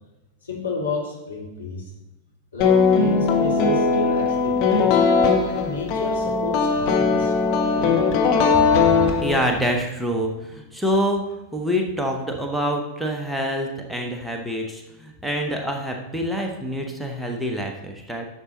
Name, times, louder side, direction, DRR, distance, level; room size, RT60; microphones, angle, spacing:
voice 1, 0.4-1.8 2.5-4.9 5.5-8.0, left 3 dB, 75° left, -3 dB, 3.0 m, -31 dB
sound 1, 2.6-9.7, left 5 dB, 40° left, 1.5 m, -19 dB
voice 2, 8.9-11.2 11.5-18.2, equal, 5° right, 1 dB, 1.3 m, -26 dB
11.0 x 7.2 x 4.2 m, 0.99 s
figure-of-eight pair, 90°, 0 cm